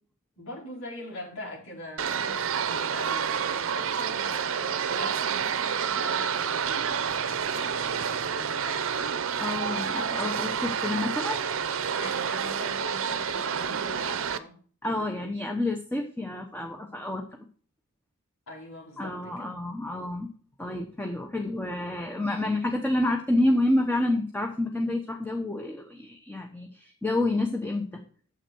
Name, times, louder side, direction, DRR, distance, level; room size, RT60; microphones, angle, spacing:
voice 1, 0.4-8.9 11.9-14.6 14.8-15.3 18.5-19.5, left 1 dB, 80° left, -3 dB, 5.0 m, -43 dB
sound 1, 2.0-14.4, right 7 dB, 65° right, 0.7 m, -29 dB
voice 2, 9.4-11.4 14.8-17.2 19.0-20.3 20.6-28.0, left 1 dB, 10° left, 2 dB, 1.0 m, -28 dB
10.0 x 7.4 x 4.6 m, 0.43 s
head